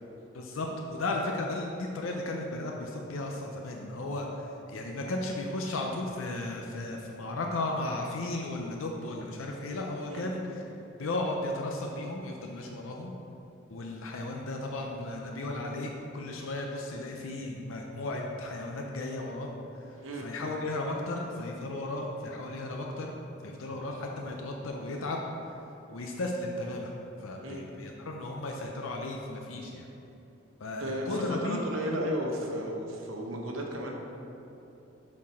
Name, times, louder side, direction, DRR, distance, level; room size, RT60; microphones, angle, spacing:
voice 1, 0.3-10.7 11.0-13.1 13.7-23.1 23.4-25.2 25.9-26.9 27.2-29.9 30.6-31.6, left 2 dB, 75° left, 0 dB, 0.6 m, -35 dB
voice 2, 30.8-33.9, equal, 75° right, 0 dB, 0.9 m, -34 dB
7.4 x 4.4 x 4.3 m, 2.9 s
head